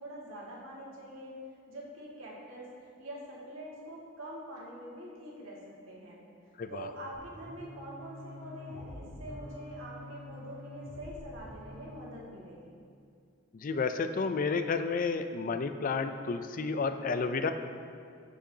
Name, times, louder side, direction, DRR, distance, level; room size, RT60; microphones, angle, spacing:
voice 1, 0.0-1.4 1.7-6.2 6.7-12.8, right 1 dB, 90° right, -4 dB, 1.9 m, -45 dB
voice 2, 6.6-6.9 13.5-17.5, left 4 dB, 45° left, 9 dB, 0.4 m, -31 dB
sound 1, 7.1-12.0, left 1 dB, 40° right, 1.9 m, -47 dB
14.0 x 6.4 x 2.8 m, 2.3 s
head